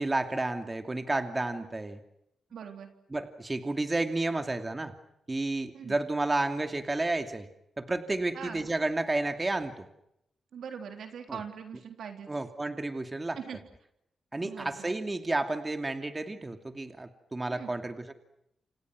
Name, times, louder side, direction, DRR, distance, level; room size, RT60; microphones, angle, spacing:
voice 1, 0.0-2.0 3.1-4.9 5.3-7.5 7.8-9.9 11.3-11.4 12.3-13.4 14.3-18.1, right 2 dB, 25° right, 7 dB, 2.6 m, -31 dB
voice 2, 2.5-2.9 5.7-6.0 8.3-8.7 10.5-12.3 13.3-13.6 14.4-14.9 17.5-17.7, right 7 dB, 80° right, 5 dB, 3.7 m, -42 dB
29.0 x 28.0 x 6.3 m, 0.78 s
cardioid pair, 65°, 0 cm